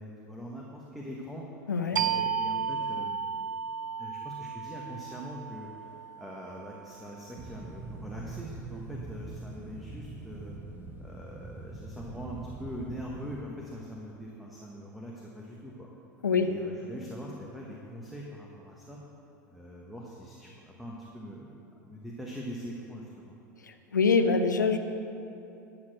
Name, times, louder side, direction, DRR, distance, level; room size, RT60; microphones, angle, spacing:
voice 1, 0.0-1.4 1.9-3.2 4.0-5.9 6.2-10.5 11.0-15.9 16.3-19.0 19.5-23.4, equal, ahead, -3 dB, 1.4 m, -42 dB
sound 1, 2.0-7.3, right 7 dB, 75° right, 0.4 m, -34 dB
sound 2, 7.4-13.4, right 3 dB, 20° right, 1.2 m, -43 dB
voice 2, 23.9-24.8, left 5 dB, 80° left, 7 dB, 0.7 m, -24 dB
11.5 x 6.7 x 6.2 m, 2.9 s
figure-of-eight pair, 80°, 10 cm